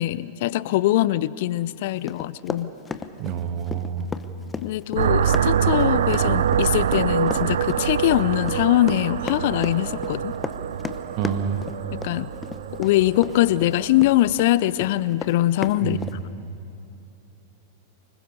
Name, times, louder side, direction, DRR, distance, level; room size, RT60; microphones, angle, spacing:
voice 1, 0.0-2.7 4.6-10.3 12.0-12.3 12.8-16.0, left 15 dB, 55° left, 19 dB, 0.5 m, -22 dB
Run, 2.1-14.5 14.8-16.2, left 5 dB, 15° left, 1.0 m, -34 dB
voice 2, 3.2-4.1 11.2-11.6 15.8-16.2, right 8 dB, 45° right, 8 dB, 1.7 m, -28 dB
sound 1, 5.0-14.5, right 8 dB, 70° right, 0.6 m, -25 dB
sound 2, 5.4-14.0, right 2 dB, 10° right, 1.8 m, -45 dB
25.0 x 21.0 x 6.8 m, 2.8 s
figure-of-eight pair, 95°, 0 cm